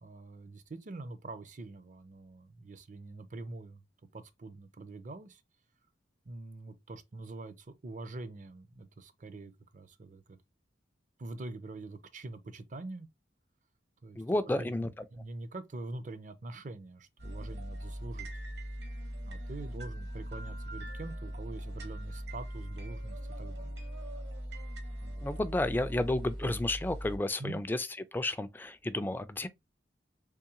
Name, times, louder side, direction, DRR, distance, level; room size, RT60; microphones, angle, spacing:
voice 1, 0.0-3.8 4.1-5.4 6.3-10.4 11.2-13.1 14.0-18.3 19.2-23.9 25.0-25.5 26.4-26.5 27.4-27.6, right 2 dB, 45° right, 0.5 m, -45 dB
voice 2, 14.2-15.1 25.2-29.5, left 1 dB, 10° left, 0.3 m, -32 dB
sound 1, 17.2-27.2, equal, 70° right, 1.2 m, -40 dB
3.6 x 3.0 x 2.9 m
head